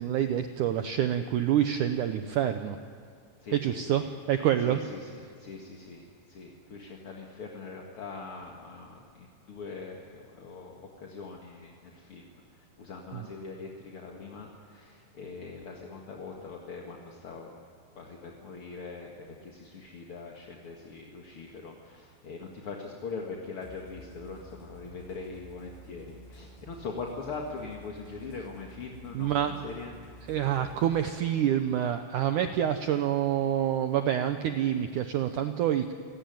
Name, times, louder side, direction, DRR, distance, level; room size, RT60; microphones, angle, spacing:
voice 1, 0.0-2.8 3.5-4.0 4.3-4.8 13.1-13.2 29.1-29.6 30.3-35.9, right 10 dB, 80° right, 8 dB, 1.8 m, -27 dB
voice 2, 3.4-4.1 4.6-17.5 17.9-30.0, left 4 dB, 45° left, 0 dB, 2.0 m, -42 dB
sound 1, 23.6-31.0, left 1 dB, 80° left, 8.1 m, -51 dB
28.0 x 17.5 x 9.3 m, 2.2 s
omnidirectional pair, 4.7 m